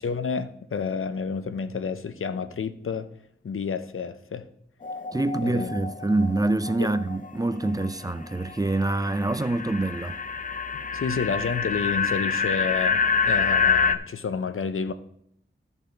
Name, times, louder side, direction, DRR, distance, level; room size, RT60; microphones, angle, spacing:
voice 1, 0.0-3.1 3.4-4.5 5.4-5.7 6.8-6.9 10.9-14.9, left 5 dB, 85° left, 0.6 m, -30 dB
sound 1, 4.8-8.1 8.5-13.9, left 5 dB, 40° left, 0.5 m, -27 dB
voice 2, 5.1-10.2, right 2 dB, 20° right, 0.4 m, -25 dB
13.5 x 5.4 x 3.9 m
wide cardioid pair, 85°, 21 cm